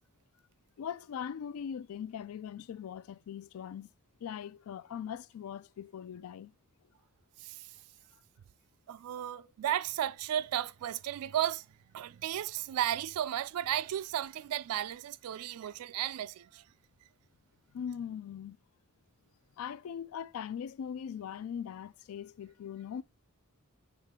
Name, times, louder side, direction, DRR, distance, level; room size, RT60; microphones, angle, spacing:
voice 1, 0.8-3.9 4.2-6.5 17.7-18.6 19.6-23.0, left 8 dB, 75° left, 0.3 m, -40 dB
voice 2, 7.4-7.8 8.9-11.7 11.9-16.6, right 11 dB, 85° right, 0.3 m, -34 dB
8.2 x 3.2 x 3.6 m
head